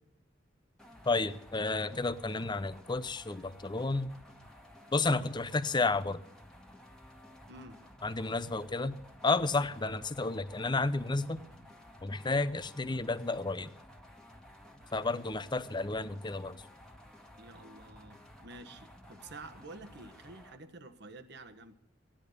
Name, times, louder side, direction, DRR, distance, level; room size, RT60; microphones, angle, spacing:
Metal Loop, 0.8-20.6, left 1 dB, 5° left, 1.7 m, -54 dB
voice 1, 1.1-4.1 4.9-6.2 8.0-9.0 9.2-11.4 12.0-13.7 14.9-16.6, left 3 dB, 25° left, 14 dB, 0.7 m, -31 dB
voice 2, 7.5-7.8 17.4-21.7, right 2 dB, 60° right, 8 dB, 1.3 m, -50 dB
16.0 x 10.5 x 6.7 m, 0.80 s
head